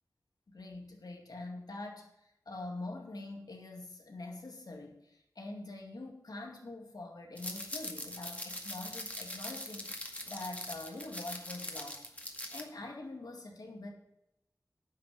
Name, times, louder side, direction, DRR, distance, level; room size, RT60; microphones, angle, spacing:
voice 1, 0.5-2.1 2.5-13.9, left 2 dB, 80° left, 1 dB, 2.3 m, -45 dB
sound 1, 7.4-12.6, left 1 dB, 20° left, 2.0 m, -42 dB
9.9 x 6.2 x 8.5 m, 0.83 s
wide cardioid pair, 60°, 7 cm